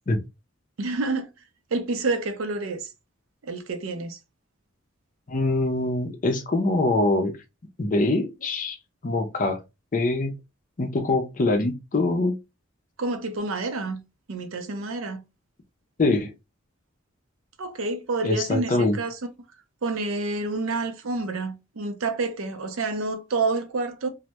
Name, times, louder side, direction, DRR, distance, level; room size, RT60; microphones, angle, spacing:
voice 1, 0.8-1.3 1.7-2.9 3.4-4.2 13.0-14.0 14.3-15.2 17.6-19.2 19.8-24.1, right 3 dB, 75° right, 0.5 m, -28 dB
voice 2, 5.3-7.3 7.8-8.8 9.0-9.6 9.9-10.3 10.8-12.3 16.0-16.3 18.2-19.0, left 2 dB, 40° left, 0.5 m, -23 dB
2.2 x 2.1 x 2.8 m
head